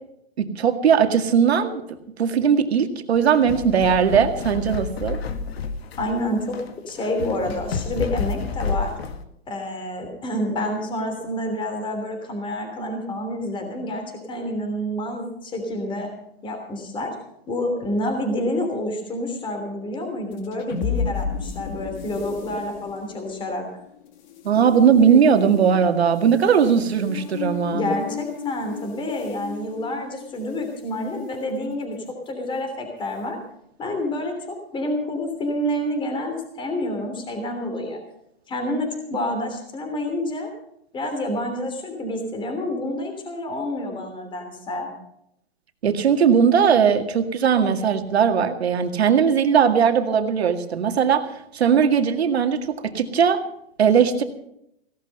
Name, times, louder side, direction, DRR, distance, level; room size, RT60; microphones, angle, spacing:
voice 1, 0.4-1.8 2.2-5.2 24.4-27.8 45.8-51.2 51.5-53.4 53.8-54.2, right 7 dB, 85° right, 7 dB, 2.0 m, -19 dB
sound 1, 3.2-9.2, left 5 dB, 75° left, 1.9 m, -30 dB
voice 2, 6.0-6.6 6.8-8.9 9.5-16.1 16.4-17.1 17.5-23.7 27.7-32.0 32.3-33.4 33.8-38.0 38.5-40.5 40.9-44.9, left 1 dB, 15° left, 4 dB, 3.2 m, -28 dB
sound 2, 20.3-30.8, left 7 dB, 45° left, 2.4 m, -33 dB
16.5 x 12.0 x 5.4 m, 0.76 s
hypercardioid pair, 140°, 31 cm